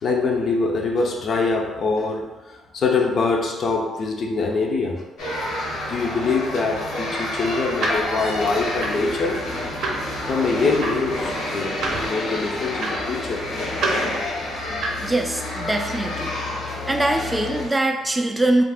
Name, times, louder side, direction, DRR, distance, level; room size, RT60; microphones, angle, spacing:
voice 1, 0.0-2.3 2.7-5.0 5.9-9.4 10.3-11.7 12.0-13.5, left 3 dB, 55° left, 1 dB, 0.4 m, -23 dB
sound 1, 5.2-17.7, left 1 dB, 80° left, 0.9 m, -29 dB
sound 2, 7.4-15.2, right 3 dB, 75° right, 0.6 m, -32 dB
voice 2, 15.0-16.3 16.6-18.6, right 2 dB, 15° right, 3 dB, 0.3 m, -22 dB
2.4 x 2.4 x 3.4 m, 1.1 s
cardioid pair, 90°, 0 cm